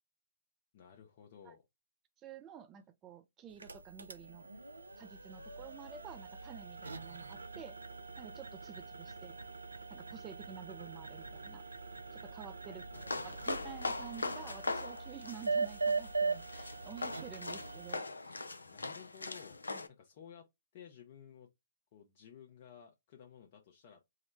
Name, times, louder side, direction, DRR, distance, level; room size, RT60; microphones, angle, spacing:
voice 1, 0.7-1.7 12.6-13.5 18.6-19.6 19.9-20.5 20.7-21.5 21.9-24.0, left 8 dB, 45° left, 0.7 m, -55 dB
voice 2, 2.2-4.5 5.0-7.8 8.2-9.4 9.9-11.6 12.1-12.8 13.2-18.4 19.7-19.8, right 9 dB, 25° right, 0.4 m, -50 dB
sound 1, 3.5-17.9, right 4 dB, 85° right, 0.5 m, -41 dB
sound 2, 12.9-19.9, left 3 dB, 85° left, 0.5 m, -41 dB
3.7 x 2.1 x 3.1 m
figure-of-eight pair, 120°, 0 cm